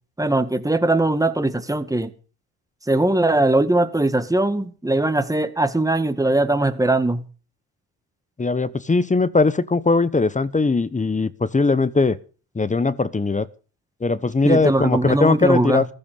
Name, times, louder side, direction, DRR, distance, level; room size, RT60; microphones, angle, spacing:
voice 1, 0.2-2.1 2.9-7.2 14.4-15.8, right 2 dB, 10° right, 1.9 m, -20 dB
voice 2, 8.4-12.2 12.5-13.5 14.0-15.8, left 3 dB, 15° left, 1.0 m, -20 dB
15.0 x 12.0 x 5.4 m
supercardioid pair, 75°, 43 cm